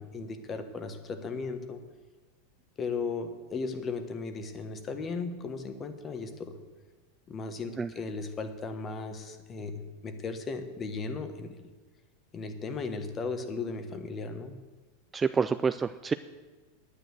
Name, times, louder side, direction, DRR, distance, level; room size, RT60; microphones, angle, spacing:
voice 1, 0.0-1.8 2.8-6.6 7.3-11.6 12.3-14.6, left 4 dB, 25° left, 9 dB, 1.3 m, -36 dB
voice 2, 15.1-16.1, right 5 dB, 15° right, 12 dB, 0.3 m, -27 dB
10.0 x 9.0 x 7.8 m, 1.3 s
supercardioid pair, 140°, 0 cm